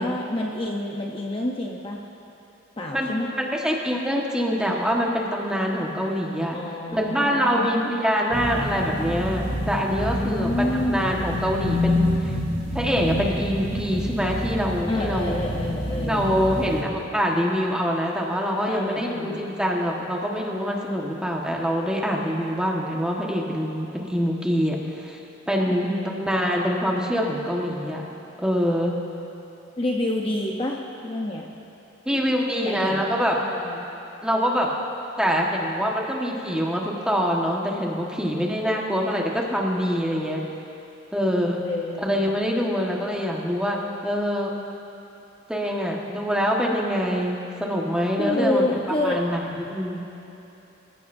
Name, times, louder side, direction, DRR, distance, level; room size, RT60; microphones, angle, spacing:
voice 1, 0.0-2.0 2.8-3.3 6.5-7.8 10.1-11.0 14.8-16.3 18.6-19.5 25.7-26.2 29.8-31.5 32.6-33.1 33.4-33.9 41.6-42.2 48.2-49.2, left 1 dB, 25° left, -1 dB, 0.9 m, -28 dB
voice 2, 3.4-6.6 6.9-10.5 10.9-12.4 12.7-15.4 16.0-25.2 25.5-28.0 28.4-28.9 32.0-33.4 34.2-34.7 35.2-40.4 41.1-41.6 42.0-44.5 45.5-48.6 49.0-50.1, equal, 5° right, -2 dB, 1.4 m, -25 dB
sound 1, 8.3-16.8, left 1 dB, 20° right, 2.8 m, -28 dB
26.0 x 15.5 x 2.7 m, 3.0 s
head